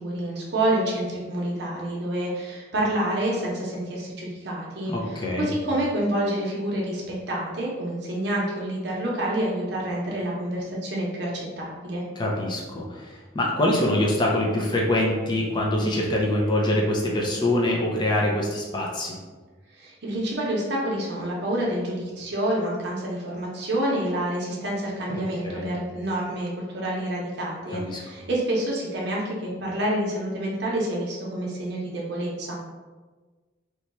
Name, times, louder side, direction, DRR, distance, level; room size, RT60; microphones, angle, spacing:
voice 1, 0.0-12.0 19.7-32.6, right 1 dB, 60° right, -4 dB, 0.7 m, -28 dB
voice 2, 4.9-5.5 12.2-19.2 25.1-25.2 25.4-25.7 27.7-28.0, left 1 dB, 25° left, -2 dB, 0.5 m, -24 dB
3.0 x 2.3 x 4.1 m, 1.3 s
head